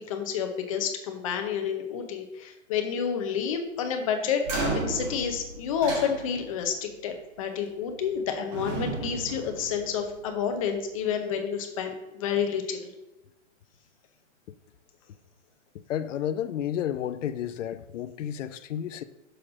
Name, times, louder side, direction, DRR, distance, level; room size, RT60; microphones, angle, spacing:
voice 1, 0.1-4.4 4.7-12.8, left 7 dB, 25° left, 0.7 m, -29 dB
sound 1, 4.4-6.7 7.8-8.2 8.5-10.3, right 2 dB, 35° right, 1.9 m, -33 dB
voice 2, 15.7-19.0, left 10 dB, 75° left, 0.6 m, -32 dB
6.3 x 4.6 x 6.0 m
hypercardioid pair, 165°, 38 cm